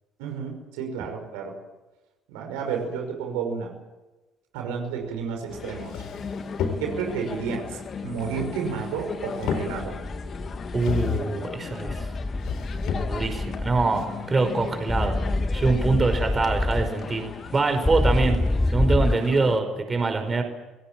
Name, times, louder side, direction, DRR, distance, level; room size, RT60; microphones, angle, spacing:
voice 1, 0.2-1.5 2.3-3.7 4.5-6.0 6.8-10.0, right 6 dB, 80° right, 3 dB, 5.7 m, -31 dB
sound 1, 5.3-5.4 5.7-7.2 8.2-9.0 9.3-10.1 10.7-11.4 12.4-13.4 13.9-14.0, left 7 dB, 65° left, 3.9 m, -31 dB
sound 2, 5.5-19.6, left 6 dB, 45° left, 2.7 m, -37 dB
sound 3, 9.7-10.8 11.9-13.9 14.9-16.9 17.8-19.2, left 2 dB, 10° left, 0.8 m, -26 dB
voice 2, 10.7-12.1 13.1-15.2 15.5-17.2 17.5-18.4 18.7-20.4, right 3 dB, 30° right, 7 dB, 5.2 m, -24 dB
29.5 x 17.5 x 7.6 m, 1.1 s
hypercardioid pair, 65°, 0 cm